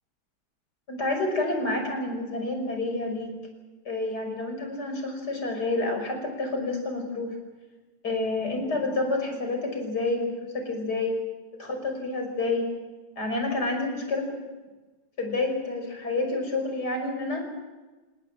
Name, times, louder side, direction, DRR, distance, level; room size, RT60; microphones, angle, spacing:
voice 1, 0.9-3.3 3.9-7.3 8.0-11.2 11.6-12.7 13.2-14.4 15.2-17.4, left 2 dB, 85° left, 4 dB, 6.3 m, -29 dB
28.0 x 19.5 x 7.6 m, 1.3 s
omnidirectional pair, 1.7 m